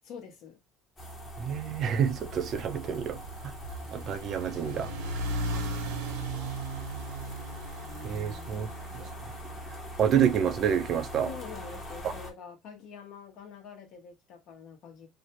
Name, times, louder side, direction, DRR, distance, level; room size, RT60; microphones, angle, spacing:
voice 1, 0.0-0.6 8.5-8.7 8.9-9.1 11.2-15.1, left 6 dB, 60° left, 1.0 m, -46 dB
sound 1, 1.0-12.3, equal, 20° left, 0.9 m, -42 dB
voice 2, 1.4-3.5 3.9-4.9 8.0-8.7 8.9-9.0 10.0-11.3, right 8 dB, 45° right, 0.4 m, -28 dB
sound 2, 2.1-10.5, right 1 dB, 90° right, 0.8 m, -37 dB
2.5 x 2.1 x 2.8 m
cardioid pair, 130°, 0 cm